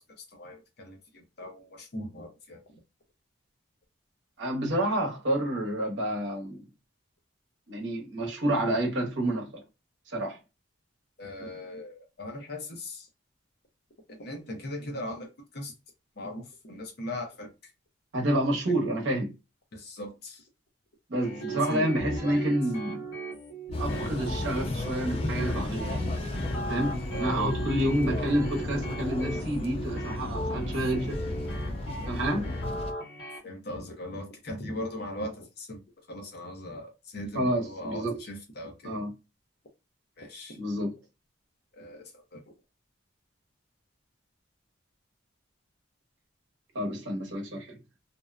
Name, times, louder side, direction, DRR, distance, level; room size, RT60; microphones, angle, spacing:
voice 1, 0.3-2.6 11.2-13.1 14.1-15.3 15.5-15.7 16.2-17.5 19.7-20.4 21.5-21.8 22.2-22.4 27.1-27.5 33.4-35.8 36.1-39.0 40.2-40.6 41.7-42.0 42.3-42.4, left 1 dB, 50° left, 0.7 m, -39 dB
voice 2, 4.4-6.6 7.7-9.6 10.1-10.4 18.1-19.3 21.1-23.0 23.8-26.1 26.7-31.2 32.1-32.5 37.3-38.2 38.8-39.1 40.6-41.0 46.7-47.8, right 1 dB, 70° right, 1.0 m, -29 dB
sound 1, 21.2-33.4, right 1 dB, 85° left, 1.0 m, -37 dB
sound 2, 23.7-32.9, left 2 dB, 30° left, 0.3 m, -34 dB
2.6 x 2.1 x 2.3 m
head